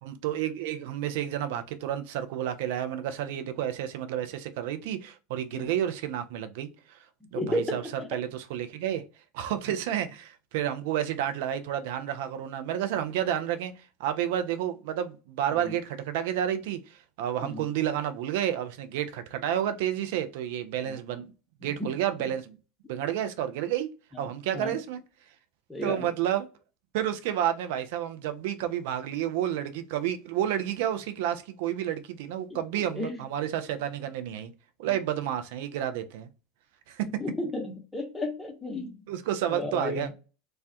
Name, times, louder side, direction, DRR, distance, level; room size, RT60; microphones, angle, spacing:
voice 1, 0.0-7.0 7.3-9.1 9.3-13.7 14.0-21.3 21.6-22.6 22.9-23.9 24.2-25.0 25.8-26.5 26.9-34.5 34.8-36.3 36.9-37.1 39.1-40.1, right 10 dB, 65° right, 0.4 m, -30 dB
voice 2, 7.4-7.8 17.4-17.7 21.6-21.9 24.5-24.7 25.7-26.1 33.0-33.1 34.8-34.9 37.2-38.9 39.5-40.1, left 1 dB, 10° left, 0.7 m, -32 dB
2.2 x 2.1 x 2.6 m
hypercardioid pair, 80°, 0 cm